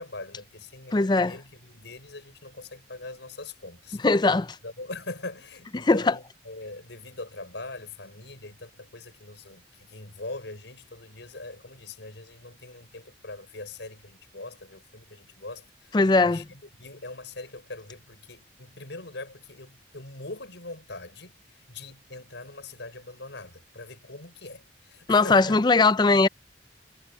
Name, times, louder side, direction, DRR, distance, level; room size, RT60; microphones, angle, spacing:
voice 1, 0.0-4.0 4.6-25.6, left 2 dB, 70° left, 5.7 m, -42 dB
voice 2, 0.9-1.4 4.0-4.6 5.7-6.2 15.9-16.5 25.1-26.3, left 3 dB, 25° left, 0.4 m, -20 dB
head